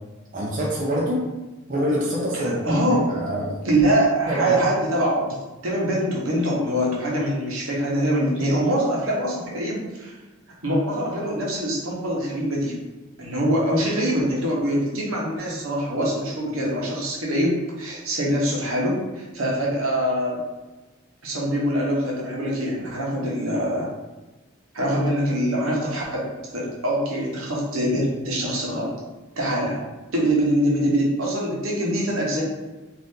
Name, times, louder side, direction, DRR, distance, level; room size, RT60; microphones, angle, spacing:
voice 1, 0.3-1.2 1.7-3.6 4.3-4.6, equal, 40° right, -4 dB, 0.5 m, -25 dB
voice 2, 2.3-3.1 3.6-10.1 10.6-12.8 13.2-20.4 21.2-23.9 24.7-26.2 26.5-28.9 29.4-29.8 30.1-32.4, equal, 75° right, -3 dB, 0.9 m, -24 dB
2.7 x 2.5 x 3.5 m, 1.2 s
head